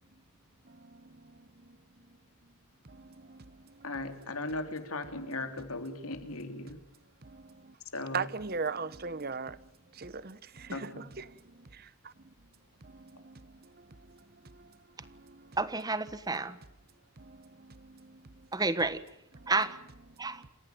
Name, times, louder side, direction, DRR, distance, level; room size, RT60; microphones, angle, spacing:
voice 1, 0.6-1.8 2.1-2.2 2.8-3.9 7.2-7.8 8.1-12.3 12.8-15.6 17.2-18.5 19.3-19.5 20.2-20.5, right 4 dB, 45° right, 1.0 m, -42 dB
voice 2, 3.8-6.8 7.9-8.3 10.7-11.0, left 2 dB, 80° left, 3.4 m, -37 dB
voice 3, 15.6-16.6 18.5-19.0 19.5-19.8 20.2-20.4, right 3 dB, 15° right, 1.3 m, -30 dB
28.5 x 15.5 x 9.2 m
head